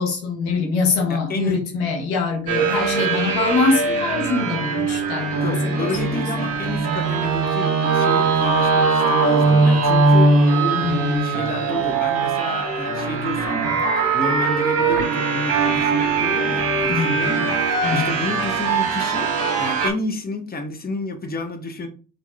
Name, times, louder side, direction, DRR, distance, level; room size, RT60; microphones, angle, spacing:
voice 1, 0.0-5.9 10.7-11.3 16.9-17.5 17.8-18.2, left 4 dB, 85° left, 0 dB, 0.9 m, -24 dB
voice 2, 1.1-1.6 5.4-10.8 11.2-13.7 14.1-17.6 17.9-21.9, left 2 dB, 20° left, 4 dB, 0.9 m, -30 dB
sound 1, 2.5-19.9, right 4 dB, 55° right, 1.1 m, -20 dB
4.5 x 2.6 x 2.2 m, 0.37 s
hypercardioid pair, 40°, 49 cm